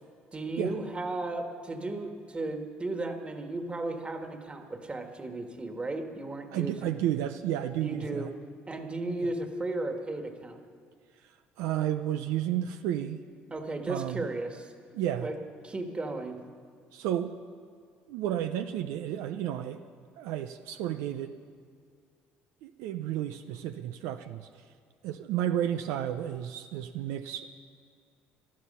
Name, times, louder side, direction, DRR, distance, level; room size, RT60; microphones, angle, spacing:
voice 1, 0.3-6.9 7.8-8.3 8.7-10.6 13.5-14.7 15.2-15.4 15.6-16.4, right 2 dB, 25° right, 5 dB, 1.8 m, -35 dB
voice 2, 6.5-8.3 9.2-9.3 11.2-11.3 11.6-13.2 13.9-14.3 14.9-15.3 16.9-17.3 18.1-19.8 20.2-21.4 22.6-24.6 25.0-27.5, right 11 dB, 80° right, 8 dB, 0.5 m, -32 dB
19.0 x 12.5 x 5.6 m, 2.1 s
supercardioid pair, 75°, 5 cm